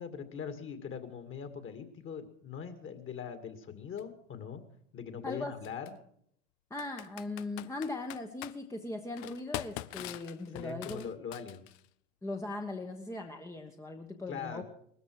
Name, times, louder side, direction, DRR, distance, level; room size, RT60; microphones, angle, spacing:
voice 1, 0.0-4.6 4.9-5.9 10.5-11.6 14.3-14.6, left 7 dB, 30° left, 9 dB, 2.3 m, -41 dB
Computer keyboard, 4.0-4.1 5.6-5.9 6.8-8.6 9.2-11.9, left 16 dB, 55° left, 0.7 m, -43 dB
voice 2, 5.2-5.6 6.7-11.0 12.2-14.6, left 2 dB, 10° left, 4 dB, 1.2 m, -39 dB
19.5 x 13.5 x 4.8 m, 0.65 s
hypercardioid pair, 90°, 39 cm